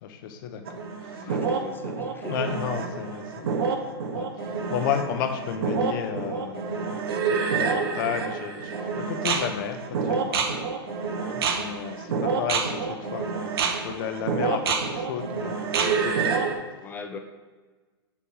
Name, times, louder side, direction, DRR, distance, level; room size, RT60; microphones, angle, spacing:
voice 1, 0.0-1.4 2.2-3.8 4.1-10.5 10.9-11.1 11.5-15.5 15.8-16.5, left 8 dB, 50° left, 6 dB, 0.9 m, -33 dB
sound 1, 0.7-16.5, right 5 dB, 65° right, 0.9 m, -28 dB
voice 2, 1.1-2.5 11.2-11.5 16.8-17.2, left 4 dB, 15° left, 5 dB, 0.7 m, -40 dB
7.2 x 3.4 x 6.2 m, 1.3 s
hypercardioid pair, 110°, 14 cm